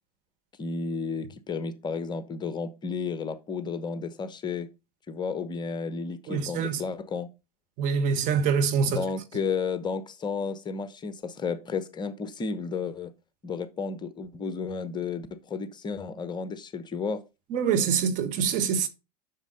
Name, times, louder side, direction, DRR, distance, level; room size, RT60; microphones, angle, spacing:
voice 1, 0.6-4.7 5.1-7.3 8.9-13.1 13.4-17.2, left 5 dB, 20° left, 1.0 m, -32 dB
voice 2, 6.3-6.8 7.8-9.0 17.5-18.9, right 6 dB, 40° right, 1.3 m, -25 dB
7.2 x 6.4 x 4.0 m
figure-of-eight pair, 90°, 20 cm